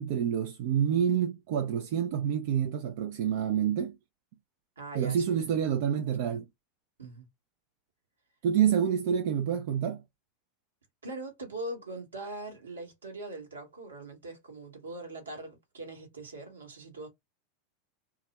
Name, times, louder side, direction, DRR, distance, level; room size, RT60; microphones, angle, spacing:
voice 1, 0.0-4.0 4.9-6.4 8.4-10.0, right 8 dB, 60° right, 0.3 m, -28 dB
voice 2, 4.8-5.5 6.3-6.4 7.0-7.3 11.0-17.1, right 2 dB, 80° right, 1.0 m, -41 dB
2.3 x 2.0 x 2.8 m
figure-of-eight pair, 85°, 0 cm